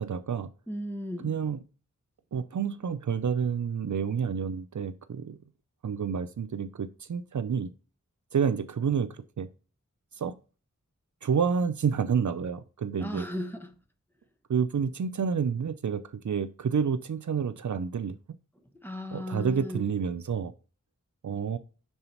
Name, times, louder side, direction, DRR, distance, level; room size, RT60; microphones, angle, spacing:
voice 1, 0.0-0.5 1.2-1.6 2.3-5.4 5.8-7.7 8.3-9.5 10.2-10.3 11.2-13.2 14.5-18.2 19.1-20.5 21.2-21.6, right 6 dB, 70° right, 0.5 m, -29 dB
voice 2, 0.7-1.4 13.0-13.7 18.8-19.9, left 1 dB, 5° left, 1.1 m, -36 dB
5.5 x 3.9 x 4.4 m
wide cardioid pair, 40°, 31 cm